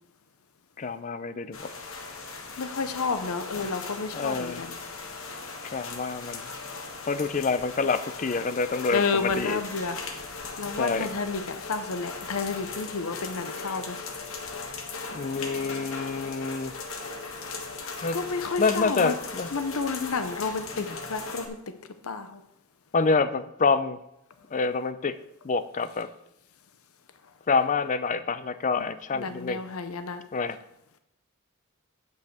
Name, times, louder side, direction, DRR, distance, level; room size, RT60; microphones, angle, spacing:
voice 1, 0.8-1.7 3.6-3.7 4.1-4.6 5.7-6.4 7.1-9.6 10.8-11.1 13.6-13.8 15.1-16.8 18.0-18.2 18.6-19.5 20.8-21.0 22.9-24.0 24.5-25.2 25.4-26.1 27.5-29.6 30.3-30.6, left 4 dB, 35° left, 13 dB, 0.5 m, -27 dB
sound 1, 1.5-21.5, left 4 dB, 70° left, 1.4 m, -38 dB
voice 2, 2.6-4.8 8.9-10.0 10.6-14.0 18.1-19.2 19.5-22.4 28.8-30.2, left 4 dB, 90° left, 10 dB, 0.8 m, -31 dB
9.2 x 5.5 x 6.5 m, 0.82 s
head